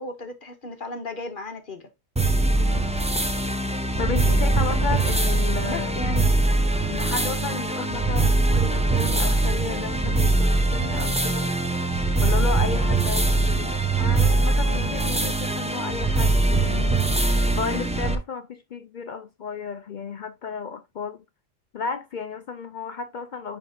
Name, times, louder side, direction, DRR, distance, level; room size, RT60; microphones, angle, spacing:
voice 1, 0.0-1.9 5.6-6.3 8.5-8.7, left 2 dB, 45° left, 1.0 m, -35 dB
sound 1, 2.2-18.2, right 2 dB, 10° right, 0.5 m, -22 dB
voice 2, 2.6-2.9 4.0-5.9 6.9-11.5 12.2-17.1 17.6-21.2 21.7-23.6, left 6 dB, 65° left, 0.4 m, -33 dB
10.5 x 3.6 x 2.7 m
omnidirectional pair, 1.3 m